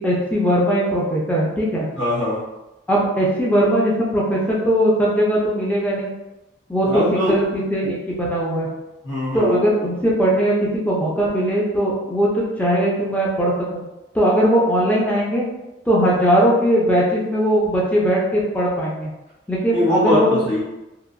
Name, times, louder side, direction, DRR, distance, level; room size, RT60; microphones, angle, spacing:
voice 1, 0.0-1.9 2.9-6.1 6.7-8.7 9.3-13.8 14.1-15.5 15.9-19.1 19.5-20.4, equal, 10° left, -5 dB, 0.5 m, -19 dB
voice 2, 2.0-2.4 6.8-7.4 9.0-9.6 19.7-20.6, left 1 dB, 90° left, -8 dB, 1.4 m, -20 dB
2.8 x 2.4 x 2.5 m, 0.99 s
head